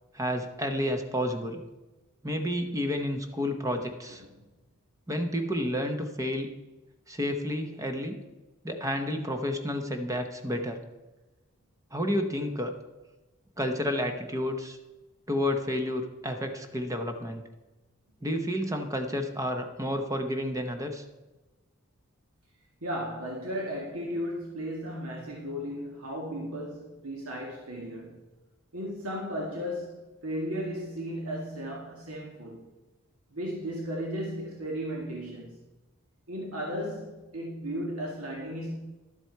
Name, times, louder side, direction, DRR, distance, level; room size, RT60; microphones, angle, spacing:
voice 1, 0.1-1.6 2.2-4.2 5.1-6.5 7.1-8.2 8.6-10.8 11.9-12.7 13.6-14.8 15.3-17.4 18.2-21.0, equal, 15° right, 5 dB, 0.9 m, -30 dB
voice 2, 22.8-28.2 28.7-32.6 33.3-35.6 36.3-38.7, equal, 90° right, -2 dB, 1.7 m, -35 dB
11.5 x 7.6 x 4.5 m, 1.1 s
head